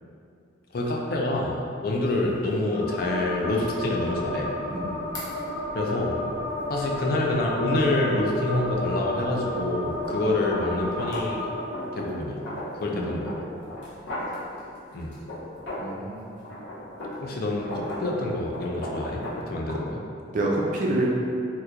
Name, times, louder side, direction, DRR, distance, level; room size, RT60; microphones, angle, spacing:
voice 1, 0.7-4.5 5.7-6.2 6.7-11.5 11.9-12.4 12.7-13.3 14.9-15.1 17.2-20.0, left 2 dB, 50° left, -1 dB, 0.4 m, -27 dB
sound 1, 1.9-2.0 2.5-2.6 5.1-5.3 9.8-16.0 16.4-19.5, left 1 dB, 70° left, 0.8 m, -37 dB
sound 2, 2.7-11.6, left 1 dB, 30° left, 0.9 m, -32 dB
voice 2, 4.7-5.0 12.9-13.3 15.8-16.3 19.7-19.8 20.3-21.1, right 2 dB, 45° right, -3 dB, 0.4 m, -28 dB
3.0 x 2.2 x 3.5 m, 2.6 s
head